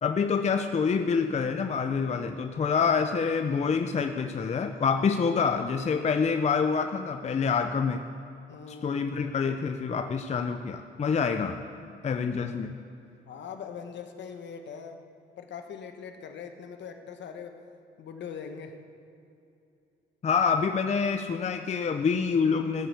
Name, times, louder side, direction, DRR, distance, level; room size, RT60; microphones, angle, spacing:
voice 1, 0.0-8.0 8.8-11.6 12.0-12.8 20.2-22.9, left 5 dB, 35° left, 7 dB, 0.6 m, -26 dB
voice 2, 8.5-9.0 13.3-15.0 15.4-17.6 18.0-18.7, left 6 dB, 65° left, 5 dB, 1.3 m, -41 dB
15.0 x 6.2 x 8.2 m, 2.7 s
cardioid pair, 90°, 20 cm